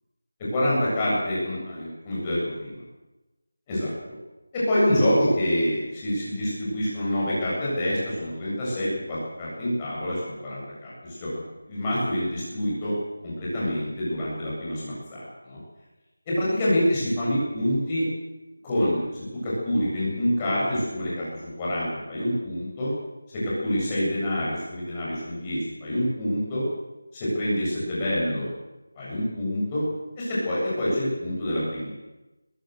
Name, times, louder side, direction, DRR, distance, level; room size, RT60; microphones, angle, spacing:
voice 1, 0.5-2.7 3.7-3.9 4.5-11.3 11.7-12.9 13.2-15.6 16.3-18.0 18.6-19.0 19.4-22.9 23.3-26.6 27.1-28.5 29.0-29.8 30.2-31.9, equal, 15° left, -7 dB, 7.9 m, -26 dB
22.0 x 15.0 x 8.0 m, 1.1 s
figure-of-eight pair, 175°, 0 cm